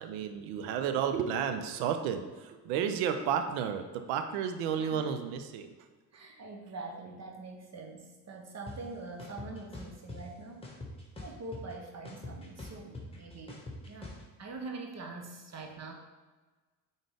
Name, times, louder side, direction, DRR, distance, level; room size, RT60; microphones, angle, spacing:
voice 1, 0.0-5.7, right 8 dB, 60° right, 7 dB, 0.8 m, -32 dB
voice 2, 4.8-5.1 6.1-10.7 11.2-15.9, right 3 dB, 35° right, 2 dB, 1.1 m, -44 dB
sound 1, 8.7-8.8 9.2-10.2 10.6-11.7 12.1-14.2, left 3 dB, 10° left, 1.6 m, -43 dB
8.8 x 4.1 x 3.5 m, 1.3 s
figure-of-eight pair, 60°, 49 cm